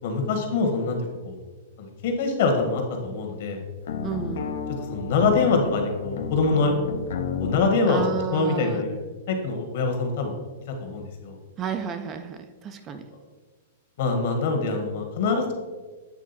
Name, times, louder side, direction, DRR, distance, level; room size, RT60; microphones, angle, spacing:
voice 1, 0.0-1.0 1.2-1.4 1.8-3.6 4.9-6.7 7.4-8.0 8.3-8.9 9.3-10.3 10.8-11.4 14.0-15.5, left 4 dB, 50° left, 3 dB, 1.3 m, -24 dB
sound 1, 3.8-7.7, left 6 dB, 70° left, 0.6 m, -32 dB
voice 2, 4.0-4.5 7.9-8.8 11.6-13.0, right 7 dB, 20° right, 8 dB, 0.3 m, -32 dB
8.4 x 3.7 x 4.1 m, 1.3 s
supercardioid pair, 165°, 0 cm